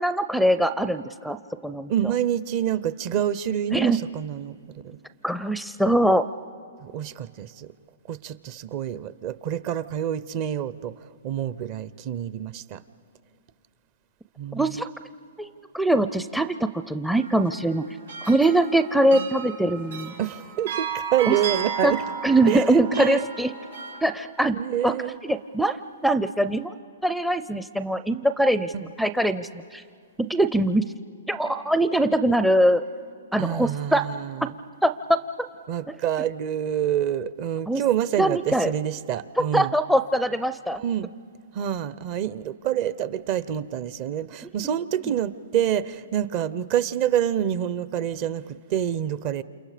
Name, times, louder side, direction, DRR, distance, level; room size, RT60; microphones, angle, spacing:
voice 1, 0.0-1.4 1.6-1.9 3.7-4.0 5.2-6.3 14.5-14.9 15.4-15.5 15.7-17.8 18.3-20.1 21.3-21.4 21.8-21.9 22.2-23.5 24.0-24.6 24.8-24.9 25.2-26.7 27.0-29.8 30.3-30.8 31.3-32.8 33.3-34.1 34.8-35.2 37.7-37.8 38.2-38.7 39.4-40.8, right 1 dB, ahead, 14 dB, 0.5 m, -22 dB
voice 2, 1.9-4.6 4.8-5.0 6.8-7.7 8.1-10.9 11.2-12.8 14.4-14.8 19.1-19.3 20.2-22.0 22.5-22.6 23.0-23.2 24.5-25.1 28.7-28.8 33.4-34.5 35.7-39.7 40.8-41.1 41.5-49.4, right 10 dB, 40° right, 16 dB, 0.7 m, -27 dB
sound 1, 17.1-24.0, right 6 dB, 85° right, 4.0 m, -34 dB
29.0 x 28.0 x 5.1 m, 2.4 s
hypercardioid pair, 140°, 0 cm